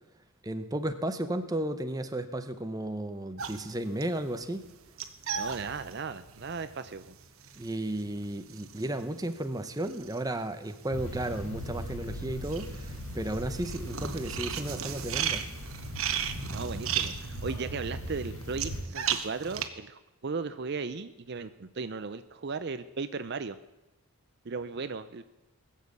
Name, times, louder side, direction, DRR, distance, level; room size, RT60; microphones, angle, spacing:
voice 1, 0.4-4.7 7.6-15.4, right 1 dB, 15° right, 8 dB, 0.8 m, -34 dB
sound 1, 3.4-10.9 11.2-19.7, right 8 dB, 70° right, 1.1 m, -36 dB
voice 2, 5.4-7.1 16.5-23.6 24.5-25.2, right 4 dB, 50° right, 11 dB, 0.5 m, -36 dB
sound 2, 10.9-18.8, equal, 75° left, 4.0 m, -39 dB
19.5 x 7.5 x 8.3 m, 0.97 s
head